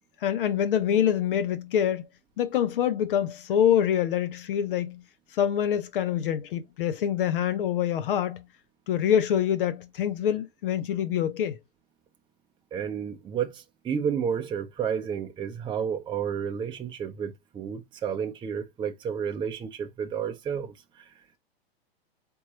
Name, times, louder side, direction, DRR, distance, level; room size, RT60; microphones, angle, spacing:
voice 1, 0.2-2.1 2.4-5.0 5.3-8.4 8.9-11.6, left 9 dB, 60° left, 0.7 m, -25 dB
voice 2, 12.7-21.1, right 7 dB, 15° right, 0.6 m, -31 dB
4.5 x 3.5 x 2.8 m
hypercardioid pair, 110°, 30 cm